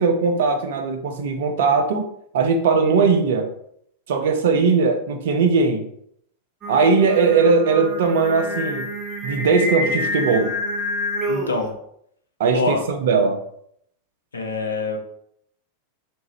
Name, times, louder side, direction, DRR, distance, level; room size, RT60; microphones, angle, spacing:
voice 1, 0.0-2.1 2.3-3.5 4.1-5.9 6.7-8.9 9.2-10.5 12.4-13.4, right 4 dB, 55° right, 5 dB, 0.5 m, -19 dB
Singing, 6.6-11.7, equal, 20° right, 0.9 m, -27 dB
voice 2, 11.3-11.7 12.5-12.8 14.3-15.0, left 3 dB, 75° left, 4 dB, 0.6 m, -25 dB
3.6 x 2.6 x 3.1 m, 0.70 s
figure-of-eight pair, 90°, 0 cm